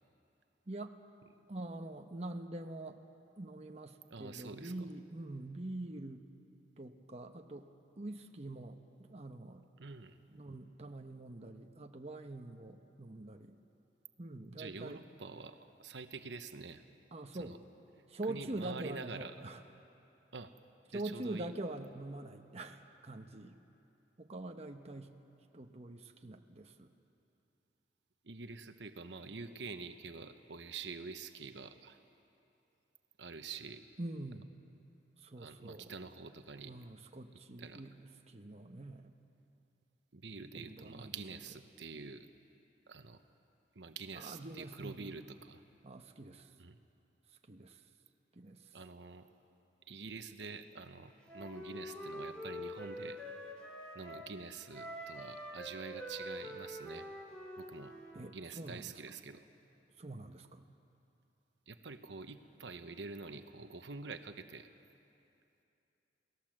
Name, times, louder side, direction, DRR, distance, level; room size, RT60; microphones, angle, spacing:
voice 1, 0.7-1.0 1.5-3.0 3.4-6.3 6.8-7.7 8.0-9.6 10.3-13.6 14.2-15.0 17.1-17.6 18.1-19.6 20.9-23.6 24.2-25.1 25.5-26.9 34.0-34.5 35.2-35.9 36.7-37.9 38.3-39.1 40.5-41.1 44.2-45.3 45.8-46.5 47.5-47.8 48.3-48.8 58.1-58.9 60.0-60.7, right 2 dB, 35° right, 5 dB, 1.0 m, -45 dB
voice 2, 4.1-4.7 9.8-10.2 14.5-16.8 17.3-17.6 18.3-19.3 20.3-20.5 20.9-21.5 28.2-32.0 33.2-33.8 35.4-36.7 37.6-37.8 40.1-42.3 42.9-43.2 43.7-45.6 46.6-46.8 48.7-49.3 49.9-53.2 53.9-57.1 57.6-57.9 58.3-59.4 61.7-64.7, right 4 dB, 75° right, 8 dB, 1.0 m, -47 dB
Wind instrument woodwind instrument, 51.3-54.3 54.7-58.2, equal, 5° left, 3.4 m, -45 dB
29.0 x 18.0 x 7.6 m, 2.8 s
head